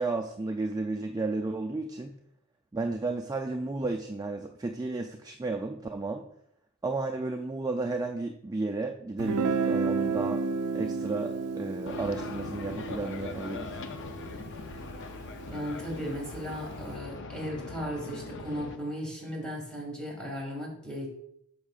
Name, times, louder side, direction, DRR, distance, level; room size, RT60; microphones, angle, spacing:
voice 1, 0.0-2.2 2.7-6.3 6.8-10.4 10.7-13.8, right 3 dB, 15° right, 3 dB, 0.3 m, -33 dB
Guitar, 9.2-15.0, right 4 dB, 85° right, 0.4 m, -32 dB
sound 1, 11.9-18.8, left 3 dB, 60° left, 0.6 m, -41 dB
voice 2, 15.5-21.1, equal, 5° left, -3 dB, 2.3 m, -36 dB
8.5 x 6.3 x 2.4 m, 0.74 s
head